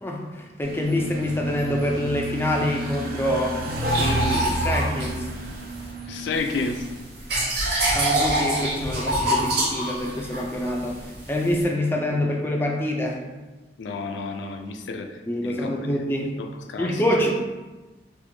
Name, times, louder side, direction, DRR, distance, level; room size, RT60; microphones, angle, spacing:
voice 1, 0.0-3.6 4.0-5.3 7.9-13.2 15.3-16.3 16.8-17.3, left 1 dB, 15° left, 0 dB, 0.3 m, -26 dB
sound 1, 0.6-6.9, right 1 dB, 55° right, 0.5 m, -31 dB
sound 2, 3.8-5.9 6.3-11.6, right 1 dB, 70° right, 0.9 m, -26 dB
voice 2, 6.1-6.8 13.8-15.2 15.4-15.7 16.4-17.0, left 3 dB, 90° left, 5 dB, 0.4 m, -30 dB
4.4 x 2.5 x 2.6 m, 1.2 s
head